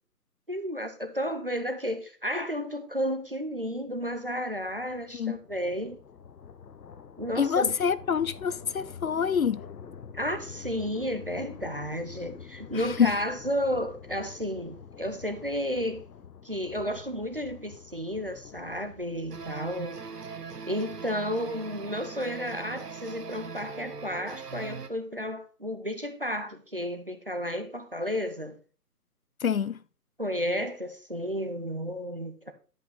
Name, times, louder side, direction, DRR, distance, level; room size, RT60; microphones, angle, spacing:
voice 1, 0.5-6.0 7.2-7.8 10.1-16.0 16.4-20.0 20.7-28.6 30.2-32.5, equal, 35° right, 0.6 m, -32 dB
sound 1, 3.8-20.1, left 6 dB, 85° left, 0.9 m, -47 dB
voice 2, 7.4-9.6 13.0-13.1 29.4-29.8, left 7 dB, 60° left, 0.5 m, -26 dB
sound 2, 19.3-24.9, right 5 dB, 70° right, 1.3 m, -40 dB
10.5 x 5.2 x 3.7 m
hypercardioid pair, 170°, 48 cm